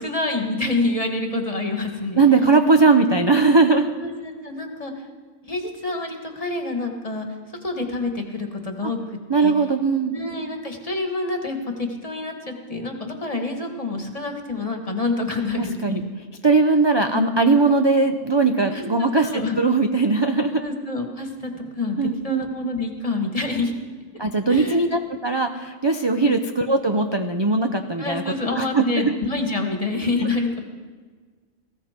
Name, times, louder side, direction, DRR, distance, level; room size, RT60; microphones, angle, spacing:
voice 1, 0.0-2.2 4.0-4.9 5.4-7.3 7.6-9.0 9.4-9.5 10.1-16.1 17.1-17.2 18.7-19.6 20.6-22.0 22.2-23.7 24.5-24.8 26.2-26.3 28.0-30.6, left 3 dB, 25° left, 3 dB, 1.7 m, -27 dB
voice 2, 2.1-3.9 9.3-10.2 15.6-16.0 16.4-20.6 22.0-22.4 24.2-29.1, right 3 dB, 30° right, 6 dB, 0.5 m, -19 dB
19.0 x 15.5 x 4.4 m, 1.5 s
omnidirectional pair, 1.4 m